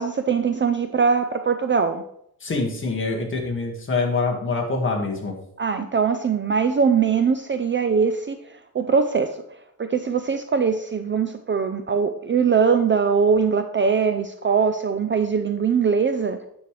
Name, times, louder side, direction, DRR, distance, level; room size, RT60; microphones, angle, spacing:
voice 1, 0.0-2.0 5.6-9.4 9.8-16.4, right 6 dB, 30° right, 8 dB, 0.4 m, -21 dB
voice 2, 2.4-5.3, left 3 dB, 30° left, 0 dB, 1.8 m, -25 dB
9.5 x 7.4 x 3.2 m, 0.74 s
wide cardioid pair, 155°, 38 cm